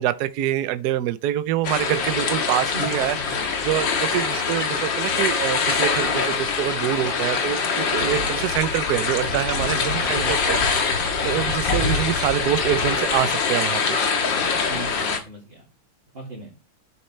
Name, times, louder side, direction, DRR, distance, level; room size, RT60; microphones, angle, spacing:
voice 1, 0.0-10.9 11.2-14.0, right 12 dB, 65° right, 1.1 m, -25 dB
sound 1, 1.6-15.2, left 5 dB, 65° left, 2.2 m, -24 dB
voice 2, 9.5-9.9 10.2-10.7 14.7-15.6 16.1-16.5, right 2 dB, 30° right, 2.5 m, -36 dB
12.0 x 7.3 x 3.3 m
omnidirectional pair, 2.2 m